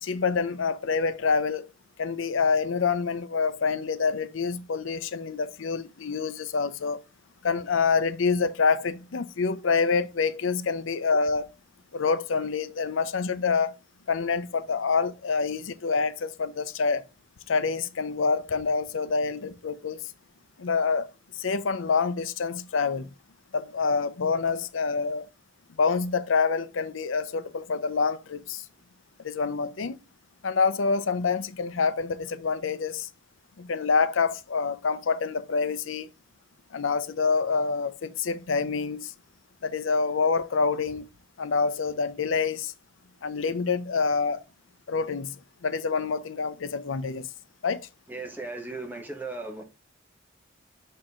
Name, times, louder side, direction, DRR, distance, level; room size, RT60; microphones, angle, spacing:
voice 1, 0.0-1.7 2.0-7.0 7.4-11.5 11.9-13.7 14.1-17.0 17.5-20.0 20.6-21.1 21.4-23.1 23.5-25.3 25.8-28.6 29.2-30.0 30.4-33.1 33.6-36.1 36.7-39.1 39.6-41.1 41.4-42.7 43.2-44.4 44.9-45.3 45.6-47.3 47.6-47.9, left 5 dB, 85° left, 0.6 m, -26 dB
voice 2, 48.1-49.6, right 3 dB, 10° right, 1.4 m, -36 dB
6.4 x 4.5 x 3.6 m
head